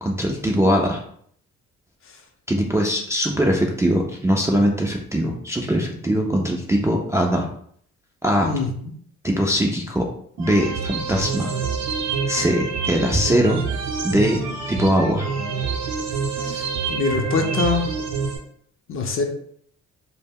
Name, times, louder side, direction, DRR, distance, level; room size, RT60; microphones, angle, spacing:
voice 1, 0.0-1.0 2.5-7.5 8.2-8.5 9.2-10.0 10.4-11.5 12.3-13.6 14.0-14.4 14.7-15.3, equal, 10° right, -1 dB, 0.3 m, -21 dB
voice 2, 8.4-8.9 16.4-17.9 18.9-19.2, left 4 dB, 45° left, 4 dB, 0.5 m, -24 dB
sound 1, 10.4-18.4, right 5 dB, 65° right, 0.7 m, -27 dB
2.1 x 2.1 x 3.5 m, 0.63 s
cardioid pair, 90°, 30 cm